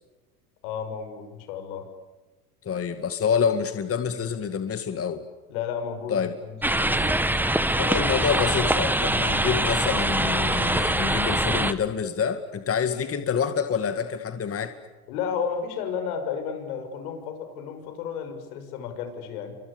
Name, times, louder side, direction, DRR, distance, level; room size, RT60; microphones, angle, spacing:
voice 1, 0.6-1.9 5.5-7.2 15.1-19.6, left 7 dB, 70° left, 7 dB, 6.7 m, -32 dB
voice 2, 2.6-5.2 6.1-6.3 7.8-14.7, left 7 dB, 30° left, 9 dB, 2.2 m, -27 dB
sound 1, 6.6-11.7, right 1 dB, 5° right, 1.7 m, -23 dB
30.0 x 25.5 x 7.1 m, 1.2 s
hypercardioid pair, 90°, 45 cm